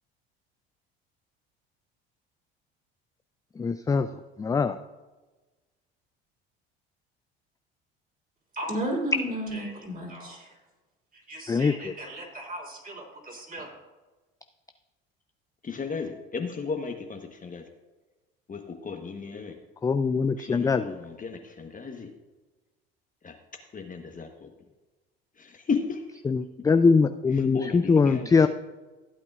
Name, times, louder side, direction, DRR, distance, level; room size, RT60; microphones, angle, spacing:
voice 1, 3.6-4.1 4.4-4.8 11.5-11.9 19.8-21.0 26.2-28.5, left 4 dB, 10° left, 9 dB, 0.3 m, -22 dB
voice 2, 8.5-10.5 11.3-13.7, right 1 dB, 30° right, 0 dB, 3.6 m, -34 dB
voice 3, 15.6-17.6 18.5-19.5 20.4-22.1 23.2-23.3 23.7-24.5 25.4-26.0 27.5-28.5, left 5 dB, 30° left, 4 dB, 1.1 m, -34 dB
15.5 x 8.4 x 2.4 m, 1.2 s
hypercardioid pair, 70°, 29 cm